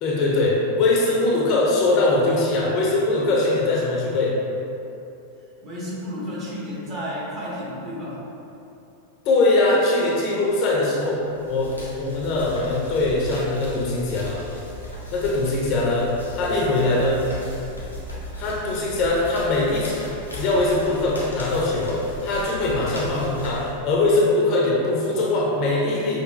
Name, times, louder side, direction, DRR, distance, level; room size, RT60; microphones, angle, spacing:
voice 1, 0.0-4.4 9.3-14.4 15.1-16.1 16.4-17.2 18.4-20.0 20.3-26.2, left 2 dB, 40° left, -3 dB, 0.6 m, -21 dB
voice 2, 5.6-8.2 13.4-13.5, equal, 35° right, -7 dB, 1.2 m, -32 dB
sound 1, 11.3-24.1, equal, 85° left, 0.8 m, -37 dB
5.8 x 2.7 x 2.3 m, 2.8 s
figure-of-eight pair, 90°, 0 cm